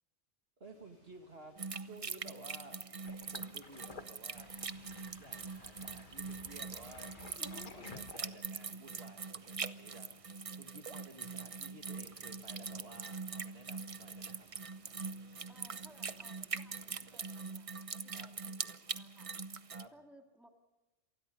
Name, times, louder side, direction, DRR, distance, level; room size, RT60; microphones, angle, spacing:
voice 1, 0.6-2.8 3.3-4.5 5.2-7.1 7.5-14.5 18.1-18.3 19.7-19.9, right 2 dB, 60° right, 4 dB, 2.4 m, -55 dB
sound 1, 0.6-17.3, right 1 dB, 85° right, 7.6 m, -68 dB
sound 2, 1.6-19.8, right 5 dB, 35° right, 0.7 m, -43 dB
Sink (filling or washing), 3.0-8.6, left 4 dB, 45° left, 1.3 m, -53 dB
voice 2, 15.5-19.3 19.9-20.5, right 1 dB, ahead, 3 dB, 2.4 m, -62 dB
26.5 x 19.5 x 5.4 m, 1.1 s
omnidirectional pair, 1.2 m